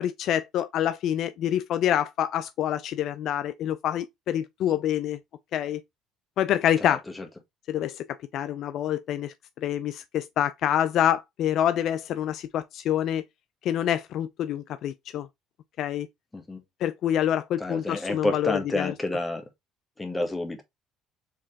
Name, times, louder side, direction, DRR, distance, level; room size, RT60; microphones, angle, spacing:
voice 1, 0.0-5.2 5.5-5.8 6.4-7.0 7.7-8.1 8.3-9.3 9.6-13.2 13.6-15.3 15.8-16.1 16.8-18.9, left 10 dB, 65° left, 0.4 m, -26 dB
voice 2, 6.8-7.3 16.3-16.6 17.6-19.4 20.0-20.6, left 2 dB, 15° left, 1.5 m, -30 dB
4.7 x 3.4 x 3.2 m
supercardioid pair, 75°, 0 cm